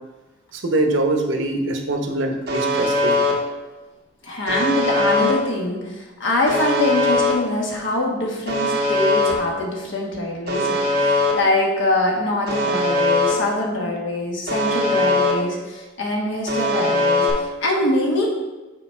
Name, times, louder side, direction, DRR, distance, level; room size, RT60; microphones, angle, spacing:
voice 1, 0.5-3.2, right 2 dB, 90° right, 3 dB, 0.9 m, -23 dB
Alarm, 2.5-3.3 4.5-5.3 6.5-7.3 8.5-9.3 10.5-11.3 12.5-13.3 14.5-15.3 16.5-17.3, left 1 dB, 55° right, 1.4 m, -20 dB
voice 2, 4.2-18.3, left 1 dB, 80° left, -1 dB, 1.4 m, -24 dB
6.3 x 4.1 x 4.4 m, 1.2 s
head